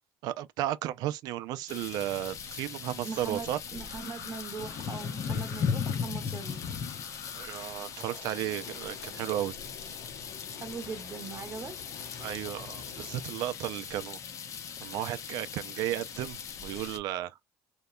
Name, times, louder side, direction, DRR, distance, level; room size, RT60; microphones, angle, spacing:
voice 1, 0.2-3.6 7.4-9.5 12.2-14.2 14.8-16.4 16.6-17.3, right 13 dB, 70° right, 0.4 m, -34 dB
sound 1, 1.7-17.0, left 7 dB, 50° left, 0.6 m, -38 dB
voice 2, 3.0-6.6 10.5-11.7, right 5 dB, 35° right, 0.8 m, -40 dB
sound 2, 3.9-13.2, left 6 dB, 80° left, 0.9 m, -50 dB
2.8 x 2.2 x 2.2 m
cardioid pair, 105°, 7 cm